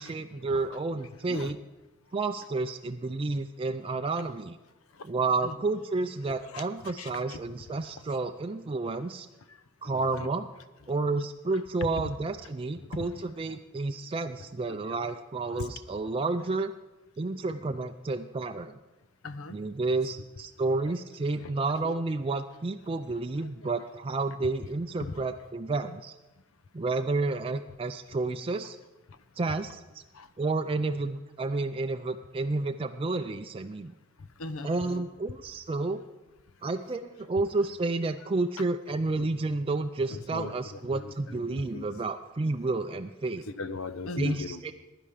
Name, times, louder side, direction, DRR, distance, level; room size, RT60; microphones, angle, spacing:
voice 1, 0.0-1.6 2.1-4.6 5.0-9.3 9.8-10.5 10.9-16.7 17.2-18.8 19.5-26.1 26.7-28.8 29.4-30.0 30.4-33.9 34.6-36.0 36.6-43.4 44.2-44.7, right 3 dB, 25° right, 6 dB, 0.4 m, -30 dB
voice 2, 6.5-7.4 7.8-8.0 9.5-9.6 9.9-10.3 11.8-11.9 12.8-13.2 13.5-13.6 14.7-15.0 15.5-15.7 19.2-19.6 20.8-20.9 21.4-21.5 21.8-22.0 23.4-23.7 25.0-25.2 29.1-29.2 30.1-30.3 34.2-35.0 39.2-39.3 40.1-41.8 43.5-44.6, left 3 dB, 85° left, 13 dB, 0.8 m, -39 dB
15.5 x 10.5 x 5.0 m, 1.1 s
head